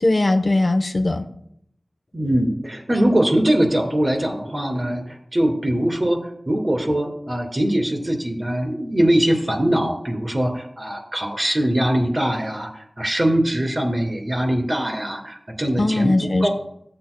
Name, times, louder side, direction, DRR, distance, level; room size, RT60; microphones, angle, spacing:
voice 1, 0.0-1.2 15.8-16.5, left 2 dB, 60° left, 6 dB, 0.8 m, -19 dB
voice 2, 2.1-16.1 16.4-16.5, right 1 dB, 40° right, 2 dB, 2.7 m, -22 dB
14.5 x 7.8 x 2.2 m, 0.71 s
wide cardioid pair, 40°, 0 cm